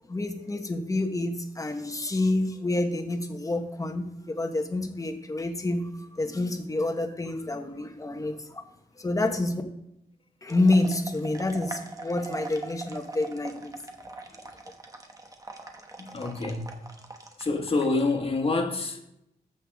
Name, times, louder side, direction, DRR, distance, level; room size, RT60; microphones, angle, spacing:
voice 1, 0.1-5.9 6.2-8.6 9.0-9.6 10.4-13.7, left 2 dB, 20° left, 1.2 m, -28 dB
sound 1, 10.5-18.1, right 3 dB, 20° right, 1.1 m, -41 dB
voice 2, 16.0-16.9 17.4-19.0, left 3 dB, 35° left, 1.6 m, -28 dB
14.5 x 5.7 x 3.5 m
wide cardioid pair, 110°, 16 cm